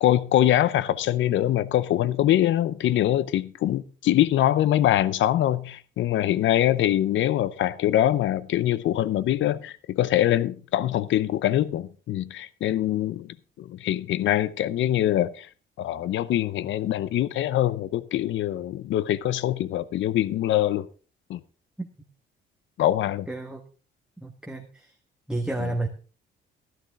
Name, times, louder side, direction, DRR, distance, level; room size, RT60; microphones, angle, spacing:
voice 1, 0.0-15.5 15.8-20.9 21.3-21.4 22.8-23.3 25.6-25.7, left 12 dB, 75° left, 0.7 m, -24 dB
voice 2, 23.3-23.6 24.2-24.9 25.3-25.9, right 2 dB, 5° right, 1.4 m, -31 dB
13.0 x 11.5 x 3.6 m
cardioid pair, 90°, 20 cm